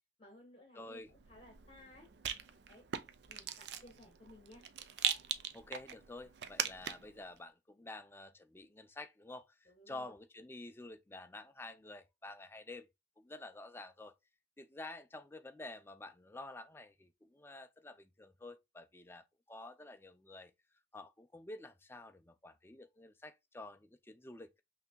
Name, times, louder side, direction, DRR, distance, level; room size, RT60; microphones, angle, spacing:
voice 1, 0.2-2.1 2.7-2.8 3.3-4.6 9.7-10.1, left 1 dB, 30° left, 1.4 m, -58 dB
voice 2, 0.7-1.1 5.5-12.9 13.2-14.2 14.6-20.5 20.9-24.6, left 2 dB, 10° left, 0.4 m, -50 dB
Rattle, 1.1-7.2, right 9 dB, 65° right, 0.4 m, -41 dB
5.8 x 2.8 x 2.2 m
head